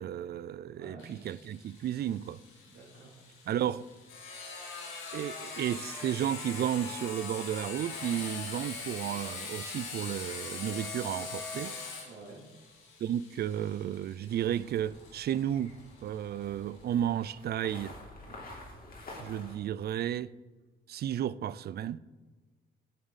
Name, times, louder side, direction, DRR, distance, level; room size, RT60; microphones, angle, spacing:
voice 1, 0.0-2.4 3.5-3.9 5.1-11.7 13.0-15.7 16.0-18.0 19.2-20.3 20.9-22.0, right 10 dB, 55° right, 0.4 m, -33 dB
voice 2, 0.7-1.2 2.7-3.2 12.1-12.4, right 2 dB, 75° right, 2.7 m, -50 dB
Sawing, 1.0-16.4, left 4 dB, 90° left, 2.1 m, -42 dB
sound 1, 14.3-19.5, left 2 dB, 45° left, 2.8 m, -49 dB
10.0 x 7.9 x 4.1 m
cardioid pair, 90°, 20 cm